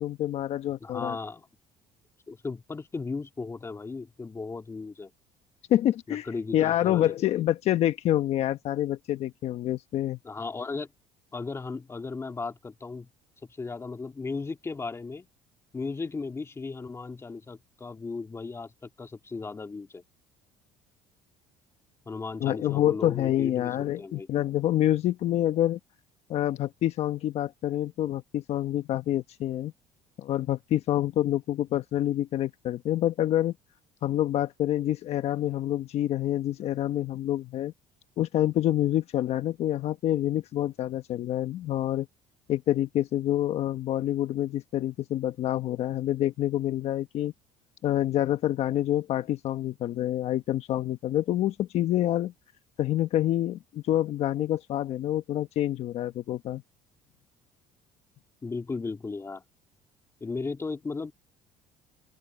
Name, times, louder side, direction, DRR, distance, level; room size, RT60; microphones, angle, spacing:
voice 1, 0.0-1.2 5.7-6.3 6.5-10.2 22.4-25.8 26.3-29.7 30.2-33.5 34.0-37.7 38.2-42.1 42.5-47.3 47.8-52.3 52.8-56.6, left 13 dB, 60° left, 1.2 m, -27 dB
voice 2, 0.8-1.5 2.3-5.1 6.1-7.1 10.2-10.9 11.3-13.1 13.4-15.3 15.7-20.0 22.1-24.3 58.4-59.4 60.2-61.1, left 4 dB, 20° left, 2.3 m, -36 dB
open air
supercardioid pair, 95°, 12 cm